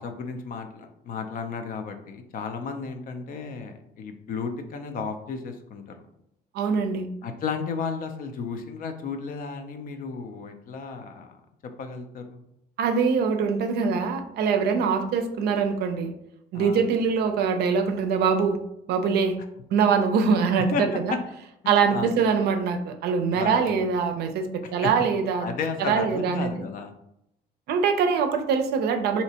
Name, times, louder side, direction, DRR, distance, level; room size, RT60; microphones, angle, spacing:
voice 1, 0.0-5.9 7.2-11.3 11.8-12.4 16.5-16.9 20.7-21.2 21.6-22.2 23.3-23.9 24.8-24.9 25.4-26.9, left 5 dB, 55° left, 6 dB, 0.5 m, -33 dB
voice 2, 6.5-7.1 12.8-16.1 16.5-18.6 18.9-19.4 19.7-21.2 21.7-25.5 25.8-26.6 27.7-29.2, right 5 dB, 70° right, 8 dB, 0.5 m, -23 dB
3.2 x 2.8 x 2.8 m, 0.80 s
cardioid pair, 110°, 17 cm